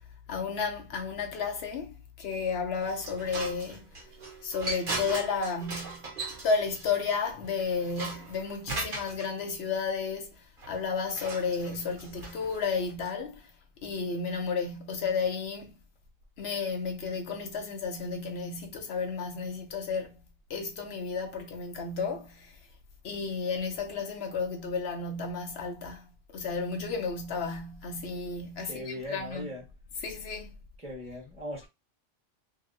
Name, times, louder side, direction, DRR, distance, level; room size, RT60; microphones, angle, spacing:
voice 1, 0.3-3.9 4.4-6.1 6.4-13.5 13.8-15.7 16.4-20.1 20.5-22.6 23.0-26.1 26.3-29.5 29.9-30.5, left 5 dB, 75° left, 0.9 m, -32 dB
sound 1, 2.8-9.3 10.6-12.9, right 3 dB, 55° right, 1.1 m, -39 dB
voice 2, 28.6-29.7 30.8-31.7, left 1 dB, 5° right, 1.3 m, -39 dB
2.8 x 2.7 x 2.6 m
omnidirectional pair, 1.1 m